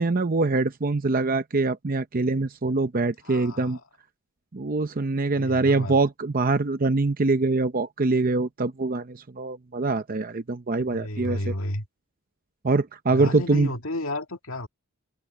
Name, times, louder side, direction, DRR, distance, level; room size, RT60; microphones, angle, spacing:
voice 1, 0.0-3.8 4.5-11.5 12.6-13.7, right 3 dB, 45° right, 0.7 m, -24 dB
voice 2, 3.2-3.8 5.3-6.0 10.9-11.9 13.1-14.7, left 1 dB, 90° left, 2.1 m, -32 dB
head